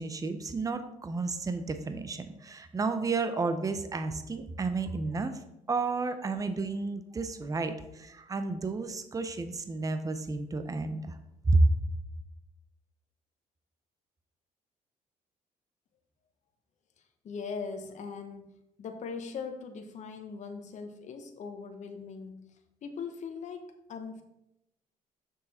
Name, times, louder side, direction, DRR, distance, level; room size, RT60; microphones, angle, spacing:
voice 1, 0.0-5.3 5.7-11.2 11.5-11.7, right 3 dB, 25° right, 9 dB, 0.8 m, -31 dB
voice 2, 17.2-18.5 18.8-24.2, left 5 dB, 55° left, 5 dB, 1.1 m, -40 dB
6.6 x 6.5 x 4.3 m, 0.84 s
cardioid pair, 95°, 15 cm